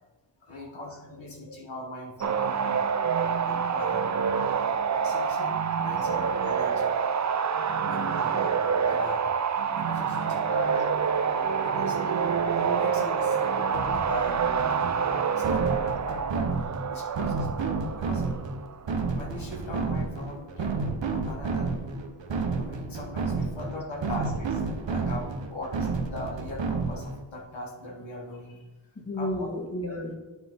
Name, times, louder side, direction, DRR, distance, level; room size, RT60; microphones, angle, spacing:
voice 1, 0.5-2.9 3.5-4.3 5.0-6.9 7.8-9.3 9.7-12.2 12.6-14.7 15.0-16.6 16.9-18.3 18.8-21.8 22.6-28.7 29.2-29.5, left 1 dB, 90° left, -2 dB, 1.4 m, -40 dB
sound 1, 2.2-18.9, right 6 dB, 40° right, 0.5 m, -27 dB
sound 2, 13.7-27.2, right 4 dB, 75° right, 1.0 m, -31 dB
voice 2, 29.0-30.2, left 1 dB, 30° left, 0 dB, 1.5 m, -33 dB
9.1 x 5.7 x 3.7 m, 1.2 s
wide cardioid pair, 70°, 45 cm